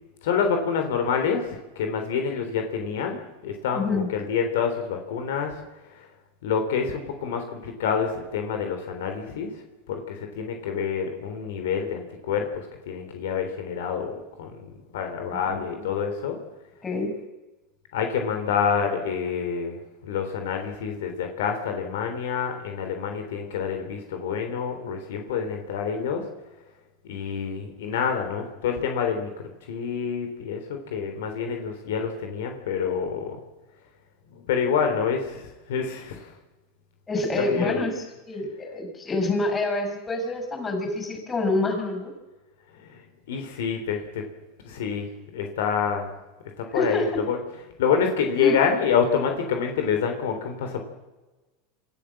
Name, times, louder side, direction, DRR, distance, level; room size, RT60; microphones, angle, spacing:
voice 1, 0.2-5.6 6.0-6.1 6.4-9.5 9.9-16.4 17.9-26.2 27.0-29.3 29.7-33.4 34.3-36.3 37.4-37.9 42.9-43.0 43.3-44.2 44.6-45.1 45.3-46.1 46.6-47.4 47.8-50.8, left 6 dB, 75° left, 5 dB, 3.5 m, -27 dB
voice 2, 3.7-4.1 15.3-15.8 16.8-17.1 37.1-42.1 46.7-47.2 48.4-48.6, left 2 dB, 20° left, 5 dB, 7.3 m, -27 dB
27.0 x 13.5 x 7.7 m, 1.1 s
hypercardioid pair, 100°, 0 cm